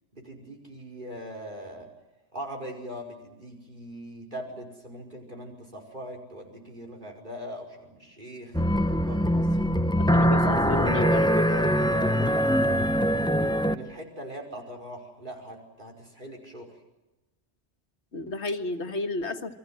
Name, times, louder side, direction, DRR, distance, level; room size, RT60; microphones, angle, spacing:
voice 1, 0.1-1.9 2.3-9.5 10.4-13.3 13.6-16.7, equal, 45° right, 1 dB, 5.5 m, -40 dB
sound 1, 8.5-13.7, equal, 5° left, 0.8 m, -23 dB
voice 2, 10.0-11.3 18.1-19.6, left 3 dB, 70° left, 6 dB, 2.0 m, -32 dB
29.0 x 23.5 x 7.7 m, 1.1 s
omnidirectional pair, 1.2 m